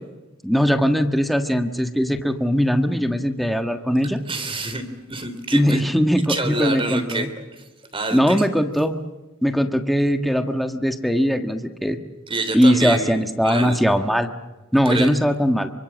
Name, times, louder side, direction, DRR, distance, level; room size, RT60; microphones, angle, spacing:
voice 1, 0.4-4.2 5.5-7.3 8.1-9.0 9.4-12.0 12.5-14.3 14.7-15.7, equal, ahead, 6 dB, 1.4 m, -20 dB
voice 2, 4.3-5.8 6.3-8.3 12.3-13.8 14.8-15.1, right 2 dB, 25° right, 9 dB, 3.4 m, -28 dB
27.0 x 25.0 x 7.5 m, 1.1 s
head